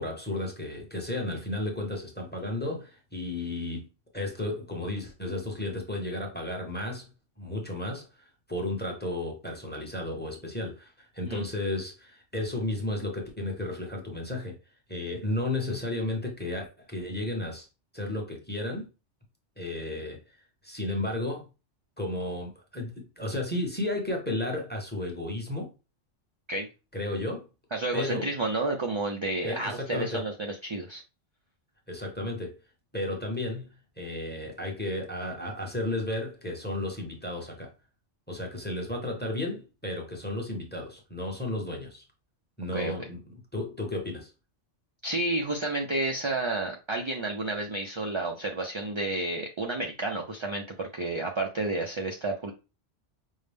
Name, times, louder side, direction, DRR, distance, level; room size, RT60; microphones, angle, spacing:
voice 1, 0.0-3.9 4.1-7.1 7.4-14.6 14.9-17.7 17.9-18.9 19.6-20.2 20.6-21.4 22.0-25.7 26.9-27.5 27.9-28.3 29.4-30.2 31.9-32.6 32.9-33.7 34.0-37.7 38.3-42.0 42.6-44.3, left 1 dB, 10° left, 0.9 m, -33 dB
voice 2, 27.7-31.0 42.7-42.9 45.0-52.5, right 2 dB, 45° right, 0.4 m, -31 dB
5.4 x 2.1 x 3.4 m
omnidirectional pair, 1.2 m